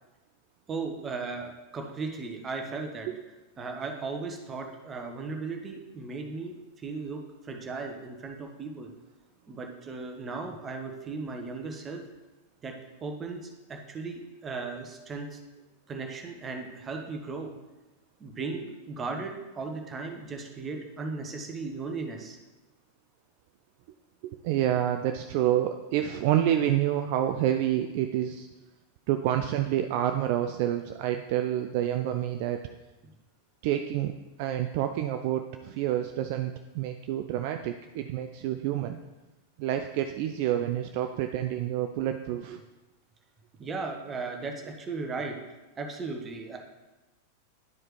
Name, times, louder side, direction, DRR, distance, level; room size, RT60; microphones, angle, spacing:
voice 1, 0.7-3.1 3.6-8.9 9.5-12.0 12.6-12.7 13.0-15.4 15.9-17.5 18.2-22.4 43.6-45.3 45.8-46.6, right 4 dB, 20° right, 3 dB, 1.0 m, -36 dB
voice 2, 24.2-28.5 29.1-32.6 33.6-34.1 34.4-39.0 39.6-42.6, right 11 dB, 45° right, 6 dB, 0.3 m, -28 dB
10.5 x 4.7 x 3.1 m, 1.1 s
figure-of-eight pair, 90°, 0 cm